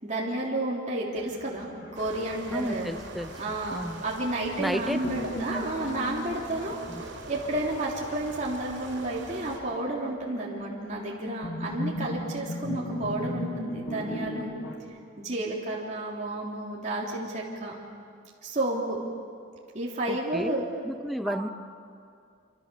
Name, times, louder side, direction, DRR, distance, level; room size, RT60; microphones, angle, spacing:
voice 1, 0.0-2.9 3.4-14.5 15.2-17.7 18.4-19.0 19.7-20.7 21.2-21.4, right 1 dB, 40° right, -4 dB, 3.5 m, -31 dB
sound 1, 1.2-4.0 5.0-14.8, equal, 80° left, 3.0 m, -38 dB
sound 2, 1.9-9.6, right 2 dB, 75° right, 4.6 m, -43 dB
voice 2, 2.5-3.3 3.7-4.0 4.6-5.0 5.3-5.9 6.9-7.0 20.1-20.5 20.8-21.5, equal, ahead, 9 dB, 0.8 m, -33 dB
27.0 x 26.5 x 7.0 m, 2.3 s
head